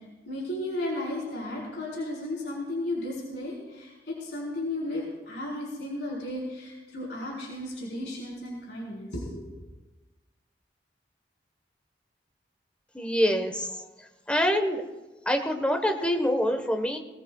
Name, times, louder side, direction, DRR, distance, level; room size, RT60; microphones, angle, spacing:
voice 1, 0.3-9.4, left 1 dB, 75° left, -4 dB, 4.5 m, -34 dB
voice 2, 12.9-14.8 15.2-17.0, equal, 5° left, 5 dB, 1.2 m, -26 dB
20.5 x 19.5 x 2.4 m, 1.1 s
head